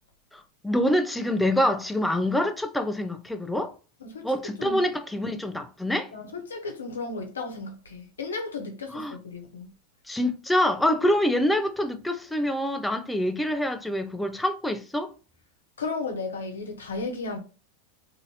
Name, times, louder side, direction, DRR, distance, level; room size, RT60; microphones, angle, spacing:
voice 1, 0.3-3.7 4.2-6.1 8.9-9.2 10.1-15.1, left 1 dB, 5° left, 0.5 m, -26 dB
voice 2, 4.0-4.3 4.6-4.8 5.1-5.3 6.1-9.7 15.8-17.4, left 3 dB, 90° left, 0.8 m, -34 dB
2.7 x 2.6 x 3.0 m
hypercardioid pair, 100°, 0 cm